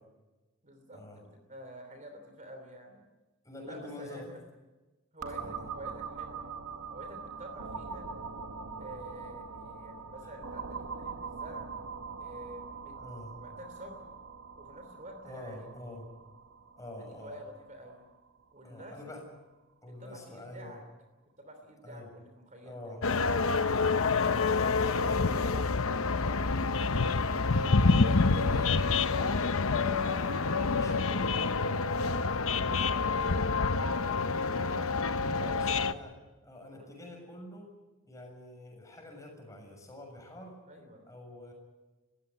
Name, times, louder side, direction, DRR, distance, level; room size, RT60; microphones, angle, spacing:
voice 1, 0.6-3.0 3.6-4.4 5.1-6.5 6.9-8.1 8.8-11.7 12.2-12.9 13.4-14.0 14.6-15.7 17.2-18.0 18.5-19.0 19.8-20.8 21.4-22.8 27.1-27.5 35.4-35.8 36.7-36.9 40.7-41.0, right 1 dB, 35° right, 6 dB, 3.1 m, -48 dB
voice 2, 3.4-4.3 5.4-5.7 10.2-10.3 13.0-13.3 15.2-16.1 16.8-17.4 18.6-19.2 19.8-20.8 21.8-22.1 22.7-23.1 24.8-27.3 27.9-29.7 30.7-31.9 32.3-33.6 34.0-34.8 35.2-36.2 36.4-37.7 38.0-40.5 41.1-41.5, left 1 dB, 15° left, 2 dB, 7.0 m, -46 dB
sound 1, 5.2-18.8, right 5 dB, 80° right, 1.9 m, -43 dB
sound 2, 23.0-35.9, left 4 dB, 70° left, 0.9 m, -27 dB
21.5 x 16.0 x 9.9 m, 1.1 s
head